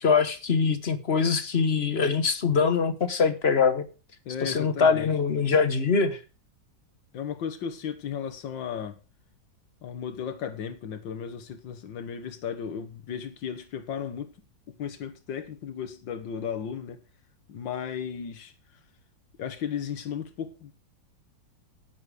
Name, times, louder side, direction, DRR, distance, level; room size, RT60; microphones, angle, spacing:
voice 1, 0.0-3.8 4.4-6.2, left 5 dB, 40° left, 1.1 m, -23 dB
voice 2, 4.3-5.1 7.1-9.0 9.8-14.3 14.8-17.0 17.5-18.5 19.4-20.7, left 7 dB, 90° left, 2.0 m, -35 dB
10.5 x 9.6 x 4.8 m
omnidirectional pair, 2.0 m